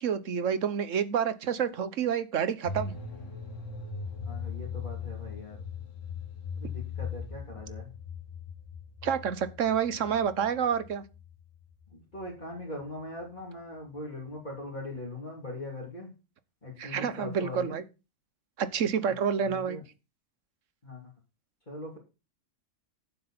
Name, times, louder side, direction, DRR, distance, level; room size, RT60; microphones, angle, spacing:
voice 1, 0.0-3.0 9.0-11.0 16.8-17.8 18.6-19.8, right 7 dB, 85° right, 13 dB, 1.3 m, -28 dB
sound 1, 2.6-12.5 12.8-12.9, left 6 dB, 90° left, 2.0 m, -40 dB
voice 2, 4.2-5.6 6.6-7.9 11.9-16.1 16.6-17.8 19.4-19.8 20.8-21.0 21.7-22.0, left 1 dB, 35° left, -5 dB, 3.2 m, -41 dB
9.6 x 7.8 x 4.4 m, 0.29 s
omnidirectional pair, 1.3 m